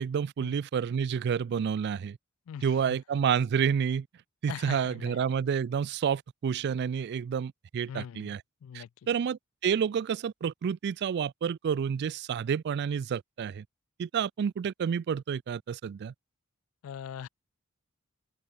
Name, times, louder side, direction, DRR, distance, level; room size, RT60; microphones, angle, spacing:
voice 1, 0.0-2.2 2.6-4.1 4.4-8.4 8.7-13.6 14.0-16.1, right 7 dB, 50° right, 0.3 m, -29 dB
voice 2, 2.5-3.0 4.5-5.2 7.9-8.9 16.8-17.3, left 8 dB, 70° left, 0.3 m, -42 dB
open air
head